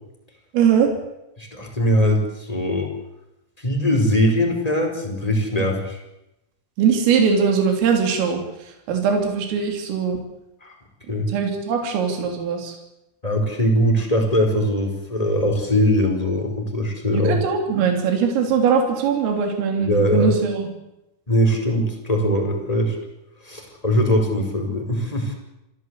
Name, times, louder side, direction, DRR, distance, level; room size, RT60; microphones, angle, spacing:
voice 1, 0.5-0.9 6.8-8.4 8.9-10.2 11.3-12.8 17.1-20.7, right 6 dB, 75° right, 3 dB, 5.9 m, -20 dB
voice 2, 1.4-2.9 3.6-6.0 10.6-10.7 11.1-11.3 13.2-17.4 19.8-20.3 21.3-23.0 23.4-25.3, equal, 5° left, 2 dB, 4.3 m, -21 dB
26.5 x 16.5 x 8.3 m, 0.89 s
omnidirectional pair, 6.0 m